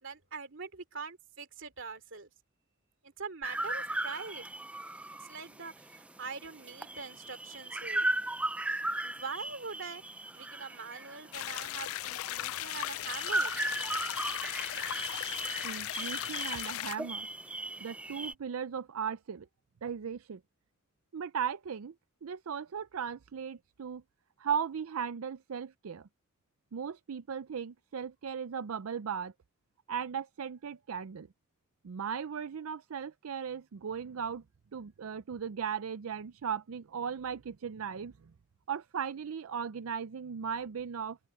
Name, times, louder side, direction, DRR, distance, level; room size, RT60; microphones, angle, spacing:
voice 1, 0.0-2.3 3.0-4.4 5.2-8.1 9.0-13.6, right 5 dB, 60° right, 2.8 m, -43 dB
sound 1, 3.4-18.3, right 1 dB, 5° right, 0.3 m, -37 dB
sound 2, 11.3-17.0, left 13 dB, 85° left, 0.4 m, -37 dB
voice 2, 15.6-17.3 17.8-19.5 19.8-20.4 21.1-21.9 22.2-24.0 24.4-26.1 26.7-29.3 29.9-31.3 31.8-34.4 34.7-38.3 38.7-41.2, right 7 dB, 85° right, 0.5 m, -37 dB
open air
head